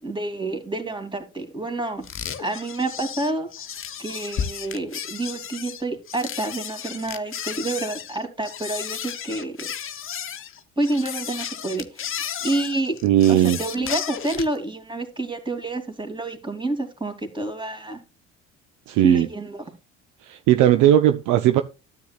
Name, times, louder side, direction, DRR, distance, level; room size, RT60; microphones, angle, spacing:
voice 1, 0.0-2.0 2.4-3.5 4.0-9.7 10.8-13.0 13.3-18.0 19.0-19.6, right 2 dB, 15° right, 2.6 m, -28 dB
sound 1, 2.0-14.6, left 8 dB, 35° left, 1.1 m, -33 dB
voice 2, 13.0-13.6 18.9-19.3 20.2-21.6, right 12 dB, 55° right, 0.7 m, -17 dB
13.0 x 8.3 x 2.4 m
figure-of-eight pair, 60°, 37 cm